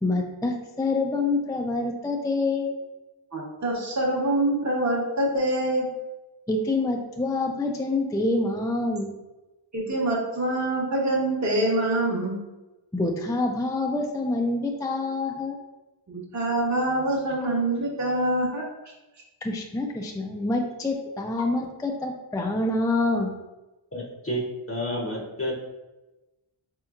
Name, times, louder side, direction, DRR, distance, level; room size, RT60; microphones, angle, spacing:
voice 1, 0.0-2.7 6.5-9.1 12.9-15.6 19.4-23.3, left 2 dB, 10° left, 2 dB, 0.3 m, -26 dB
voice 2, 3.3-5.9 9.7-12.4 16.1-18.6, right 1 dB, 35° right, -3 dB, 0.9 m, -25 dB
voice 3, 23.9-24.4 24.7-25.5, equal, 30° left, -5 dB, 0.7 m, -30 dB
4.3 x 3.0 x 2.4 m, 1.1 s
wide cardioid pair, 55°, 49 cm